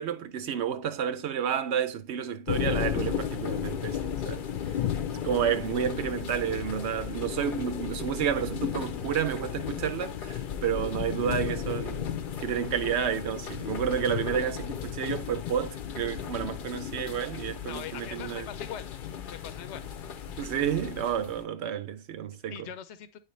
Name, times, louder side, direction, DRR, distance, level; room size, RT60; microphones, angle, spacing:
voice 1, 0.0-4.5 5.1-18.5 20.4-22.6, right 8 dB, 80° right, 0.9 m, -30 dB
sound 1, 2.5-21.4, left 8 dB, 55° left, 0.7 m, -34 dB
voice 2, 17.6-18.9 19.2-19.9 22.5-23.2, left 9 dB, 85° left, 0.9 m, -41 dB
9.4 x 3.2 x 3.1 m
omnidirectional pair, 1.1 m